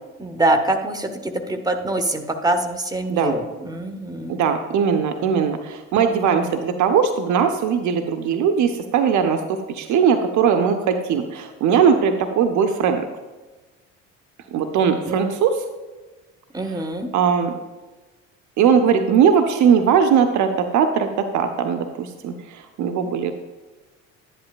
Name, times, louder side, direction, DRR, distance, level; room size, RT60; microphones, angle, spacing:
voice 1, 0.2-4.4 15.1-15.2 16.5-17.1, right 2 dB, 10° right, 7 dB, 1.0 m, -24 dB
voice 2, 4.3-13.0 14.5-15.6 16.6-16.8 17.1-17.5 18.6-23.3, right 7 dB, 45° right, 7 dB, 0.7 m, -19 dB
11.0 x 10.5 x 2.4 m, 1.2 s
figure-of-eight pair, 55°, 40 cm